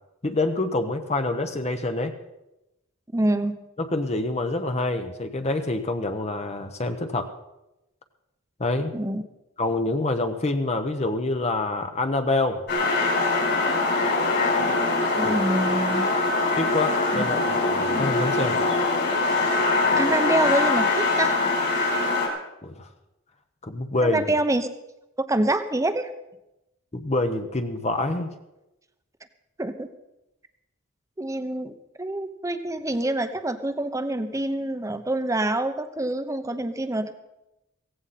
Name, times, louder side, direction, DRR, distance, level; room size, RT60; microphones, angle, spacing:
voice 1, 0.2-2.1 3.8-7.3 8.6-8.9 9.6-12.6 15.2-15.3 16.5-18.6 22.6-22.9 23.6-24.3 26.9-28.3, left 2 dB, 30° left, 7 dB, 0.9 m, -26 dB
voice 2, 3.1-3.6 8.9-9.2 15.1-16.1 17.1-17.3 20.0-21.4 24.0-24.7 25.2-26.1 29.6-29.9 31.2-37.1, right 1 dB, 15° right, 9 dB, 0.9 m, -26 dB
sound 1, 12.7-22.3, left 3 dB, 55° left, 4.4 m, -23 dB
16.5 x 15.5 x 4.2 m, 0.93 s
head